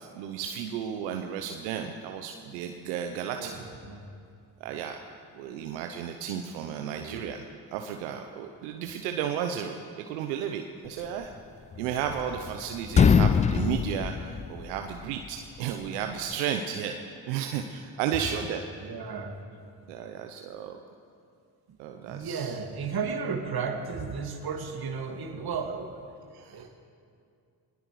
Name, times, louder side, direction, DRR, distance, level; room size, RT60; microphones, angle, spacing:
voice 1, 0.0-3.5 4.6-5.0 5.3-11.3 11.8-17.0 17.2-18.6 19.9-20.8 21.8-22.6 26.3-26.7, right 8 dB, 80° right, 5 dB, 0.9 m, -33 dB
voice 2, 3.4-4.1 6.8-7.3 18.8-19.4 21.7-21.8 22.1-26.0 26.5-26.7, right 5 dB, 50° right, 4 dB, 2.2 m, -34 dB
sound 1, 11.7-12.6 12.9-15.0, left 6 dB, 15° left, 0.3 m, -23 dB
20.5 x 20.0 x 3.2 m, 2.4 s
hypercardioid pair, 45°, 49 cm